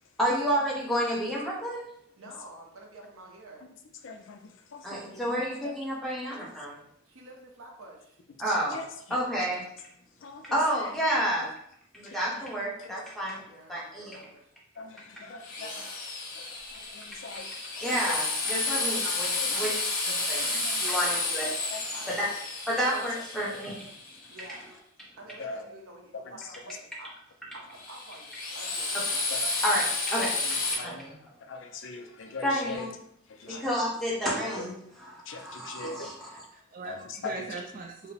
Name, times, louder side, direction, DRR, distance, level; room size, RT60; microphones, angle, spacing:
voice 1, 0.2-1.9 4.8-6.8 8.4-8.8 9.1-9.6 10.5-11.5 11.9-13.4 13.7-14.2 17.8-19.8 20.2-20.4 20.8-21.5 22.1-22.3 22.7-23.9 28.9-29.0 29.6-30.4 30.7-31.1 32.4-32.9 33.5-36.3, equal, ahead, -6 dB, 0.8 m, -30 dB
voice 2, 2.2-3.6 7.1-8.2 13.2-14.4 15.6-16.0 18.7-18.9 19.5-19.6 20.9-21.3 21.9-22.3 24.3-24.7 25.2-27.1 27.5-29.0 29.6-29.7 33.5-33.7, right 2 dB, 80° right, 1 dB, 0.8 m, -49 dB
voice 3, 4.0-4.4 4.7-5.4 8.4-8.9 10.2-10.5 10.7-10.9 12.1-12.3 12.8-12.9 14.8-15.7 16.3-17.5 17.7-18.1 18.9-19.0 19.4-19.6 20.3-20.8 21.7-21.8 25.4-25.6 26.1-26.4 29.3-29.5 30.4-31.0 31.4-32.9 33.3-33.6 35.3-36.1 36.9-37.5, left 4 dB, 60° left, 5 dB, 0.4 m, -41 dB
Drill, 15.4-24.3 27.7-30.7, left 3 dB, 75° left, 1.0 m, -31 dB
voice 4, 35.8-38.1, right 3 dB, 40° right, 1 dB, 0.4 m, -41 dB
4.7 x 2.0 x 3.3 m, 0.71 s
head